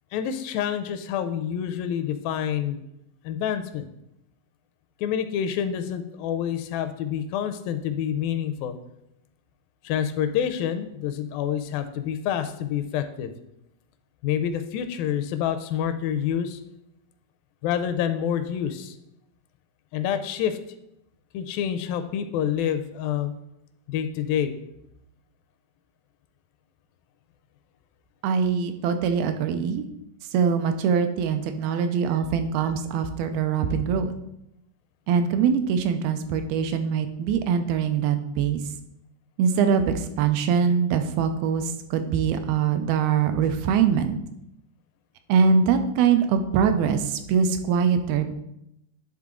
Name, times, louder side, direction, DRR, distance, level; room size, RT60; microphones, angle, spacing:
voice 1, 0.1-2.8 3.3-3.9 5.0-8.8 9.8-13.3 14.2-16.6 17.6-18.9 19.9-20.6 21.3-23.3 23.9-24.5, left 9 dB, 85° left, 9 dB, 2.2 m, -27 dB
voice 2, 28.2-29.9 30.3-34.1 35.1-38.6 39.4-44.2 45.3-48.3, right 6 dB, 90° right, 7 dB, 2.5 m, -23 dB
10.5 x 3.8 x 3.7 m, 0.81 s
omnidirectional pair, 4.2 m